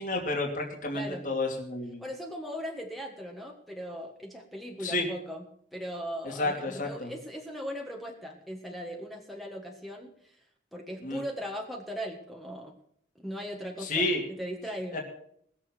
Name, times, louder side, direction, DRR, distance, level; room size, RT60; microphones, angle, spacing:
voice 1, 0.0-2.0 4.8-5.1 6.2-7.1 11.0-11.2 13.8-14.2 14.9-15.0, left 2 dB, 45° left, 1 dB, 2.7 m, -30 dB
voice 2, 0.9-1.2 2.0-5.4 5.7-10.4 10.7-12.7 13.2-15.0, equal, ahead, 1 dB, 1.6 m, -39 dB
19.5 x 7.4 x 6.2 m, 0.67 s
head